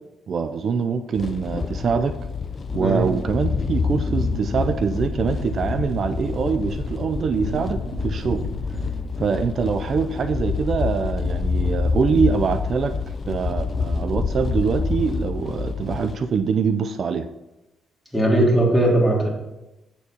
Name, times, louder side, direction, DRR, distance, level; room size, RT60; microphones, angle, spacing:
voice 1, 0.3-2.2 2.7-8.5 9.2-12.9 13.3-17.3, right 5 dB, 55° right, 10 dB, 0.5 m, -24 dB
sound 1, 1.1-16.2, left 4 dB, 40° left, 0.7 m, -27 dB
sound 2, 4.0-9.1, right 2 dB, 30° right, 2.1 m, -36 dB
voice 2, 18.1-19.3, right 1 dB, 5° left, -3 dB, 3.2 m, -18 dB
8.2 x 7.1 x 4.4 m, 0.98 s
cardioid pair, 90°, 0 cm